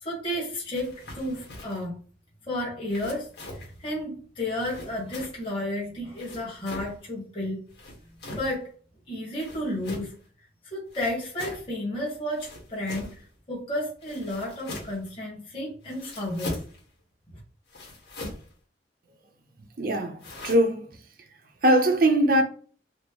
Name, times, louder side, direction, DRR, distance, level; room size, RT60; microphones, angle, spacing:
voice 1, 0.0-2.0 2.5-7.6 8.3-8.7 9.1-10.1 10.7-13.1 13.5-16.6, left 1 dB, 30° left, 1.4 m, -32 dB
sound 1, 0.7-1.9 2.9-3.8 4.6-5.5 6.2-6.9 7.7-8.6 9.3-10.2 10.9-11.7 12.3-13.3 14.0-15.1 15.8-16.8 17.7-18.5 20.2-20.5, left 1 dB, 70° left, 1.4 m, -41 dB
voice 2, 19.8-20.9 21.6-22.4, right 1 dB, 55° right, 0.6 m, -21 dB
4.3 x 2.0 x 2.9 m
head